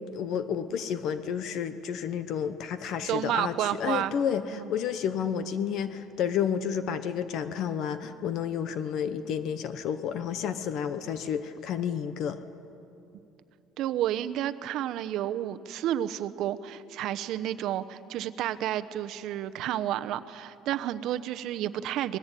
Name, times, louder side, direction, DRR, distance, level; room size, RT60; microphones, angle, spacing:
voice 1, 0.0-12.4, left 8 dB, 50° left, 11 dB, 1.0 m, -31 dB
voice 2, 3.0-4.1 4.5-4.7 13.8-22.2, right 12 dB, 55° right, 11 dB, 0.9 m, -31 dB
26.0 x 20.5 x 9.1 m, 2.7 s
cardioid pair, 170°, 0 cm